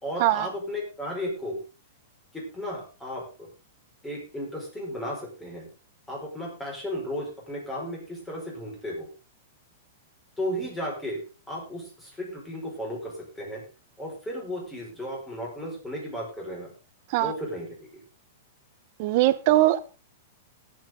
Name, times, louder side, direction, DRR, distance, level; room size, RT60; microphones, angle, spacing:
voice 1, 0.0-1.6 2.3-3.5 4.0-5.7 6.1-9.1 10.4-13.6 14.0-16.7 17.2-18.0, equal, 5° left, -2 dB, 5.2 m, -34 dB
voice 2, 19.0-19.8, right 15 dB, 40° right, 14 dB, 1.0 m, -21 dB
20.0 x 8.1 x 3.8 m, 0.34 s
supercardioid pair, 165°, 0 cm